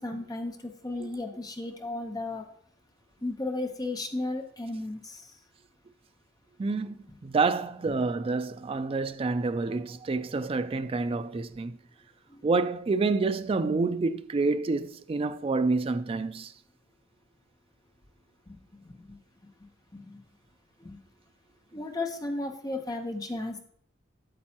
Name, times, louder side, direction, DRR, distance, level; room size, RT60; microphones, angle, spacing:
voice 1, 0.0-2.5 3.2-5.4 12.3-12.4 18.5-19.2 19.6-20.2 20.8-21.0 21.7-23.6, left 2 dB, 20° left, 0.9 m, -35 dB
voice 2, 6.6-11.8 12.4-16.5, right 3 dB, 30° right, 0.3 m, -28 dB
8.6 x 7.5 x 2.9 m
head